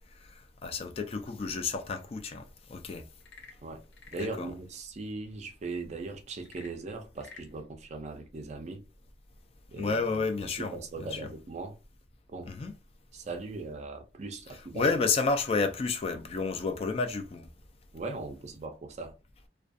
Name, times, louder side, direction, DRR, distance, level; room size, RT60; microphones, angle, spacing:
voice 1, 0.6-3.0 4.2-4.5 9.8-11.3 12.5-12.7 14.7-17.5, left 4 dB, 35° left, 0.3 m, -31 dB
Frog / Percussion / Wood, 3.1-4.4 6.4-7.5, left 5 dB, 90° left, 0.5 m, -51 dB
voice 2, 4.1-8.8 9.7-10.2 10.6-11.8 12.3-12.5 13.1-14.9 17.9-19.2, right 3 dB, 40° right, 0.4 m, -39 dB
2.4 x 2.2 x 2.5 m
head